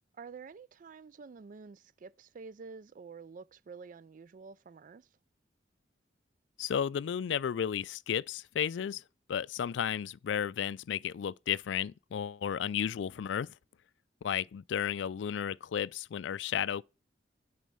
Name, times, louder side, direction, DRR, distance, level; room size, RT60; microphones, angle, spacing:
voice 1, 0.1-5.1, right 5 dB, 45° right, 0.4 m, -49 dB
voice 2, 6.6-9.0 9.3-13.5 14.2-16.8, left 8 dB, 80° left, 0.3 m, -33 dB
9.2 x 4.5 x 5.4 m
head